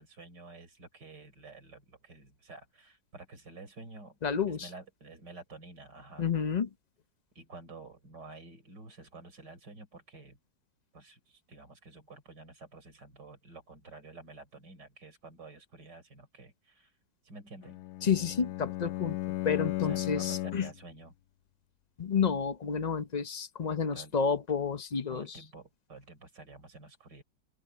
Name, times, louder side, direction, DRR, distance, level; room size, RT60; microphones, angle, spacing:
voice 1, 0.0-4.2 4.5-6.3 7.4-10.4 10.9-16.9 17.2-17.8 19.8-21.1 23.9-24.2 25.1-27.2, right 3 dB, 70° right, 5.6 m, -50 dB
voice 2, 4.2-4.7 6.2-6.7 18.0-19.2 19.4-20.7 22.0-25.3, left 6 dB, 50° left, 0.5 m, -30 dB
Bowed string instrument, 17.6-20.8, left 18 dB, 70° left, 1.0 m, -35 dB
open air
omnidirectional pair, 1.9 m